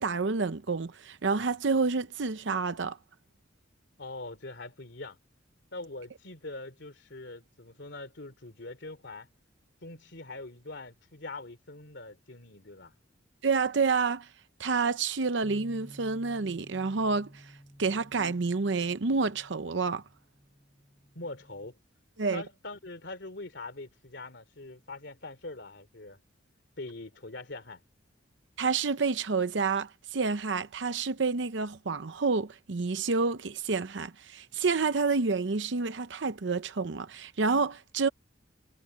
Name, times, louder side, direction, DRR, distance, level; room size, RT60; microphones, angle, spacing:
voice 1, 0.0-3.0 13.4-14.3 14.6-17.5 17.8-20.0 22.2-22.4 28.6-38.1, right 4 dB, 70° right, 0.7 m, -29 dB
voice 2, 4.0-5.2 5.7-9.3 9.8-12.9 21.1-21.8 22.3-26.2 26.8-27.8, left 2 dB, 65° left, 3.2 m, -43 dB
Bass guitar, 15.4-21.7, equal, 15° left, 5.9 m, -53 dB
head